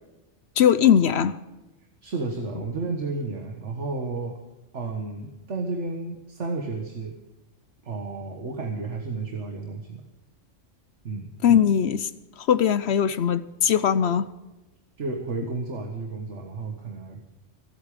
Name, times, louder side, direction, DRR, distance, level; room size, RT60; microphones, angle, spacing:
voice 1, 0.6-1.3 11.4-12.1 12.4-14.3, left 8 dB, 60° left, 15 dB, 0.9 m, -20 dB
voice 2, 2.0-4.4 4.7-7.2 7.8-10.0 11.0-11.3 15.0-17.2, right 3 dB, 65° right, 3 dB, 1.8 m, -32 dB
25.0 x 8.5 x 5.1 m, 1.1 s
omnidirectional pair, 1.3 m